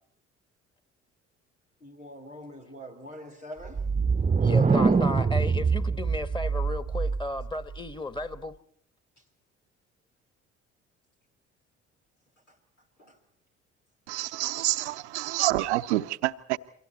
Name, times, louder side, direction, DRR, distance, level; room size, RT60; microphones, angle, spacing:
voice 1, 1.8-3.8 12.5-12.6 13.0-13.2 14.6-14.7, equal, 90° left, 3.0 m, -44 dB
sound 1, 3.6-7.5, right 5 dB, 20° right, 0.9 m, -24 dB
voice 2, 4.4-8.6, left 2 dB, 15° left, 1.6 m, -34 dB
voice 3, 14.1-16.6, right 17 dB, 75° right, 0.8 m, -28 dB
29.0 x 24.0 x 4.3 m
figure-of-eight pair, 50°, 35 cm